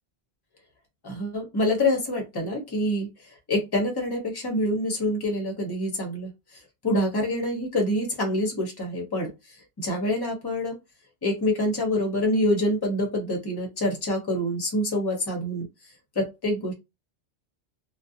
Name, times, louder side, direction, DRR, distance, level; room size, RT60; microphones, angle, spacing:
voice 1, 1.0-3.1 3.5-6.3 6.8-9.3 9.8-10.8 11.2-15.6 16.2-16.7, left 1 dB, 25° left, 2 dB, 0.6 m, -26 dB
2.4 x 2.1 x 2.6 m, 0.24 s
omnidirectional pair, 1.1 m